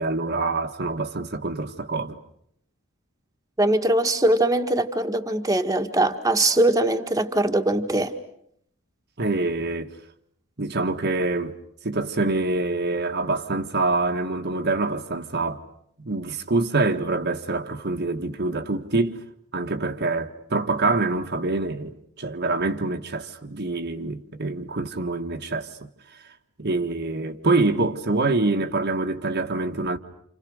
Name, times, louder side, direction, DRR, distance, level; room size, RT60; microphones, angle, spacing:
voice 1, 0.0-2.2 9.2-9.9 10.6-11.6 11.8-15.6 16.0-19.2 19.5-25.7 26.6-30.0, right 3 dB, 50° right, 1.7 m, -25 dB
voice 2, 3.6-8.1, right 1 dB, 15° right, 1.8 m, -21 dB
29.5 x 28.5 x 6.5 m
head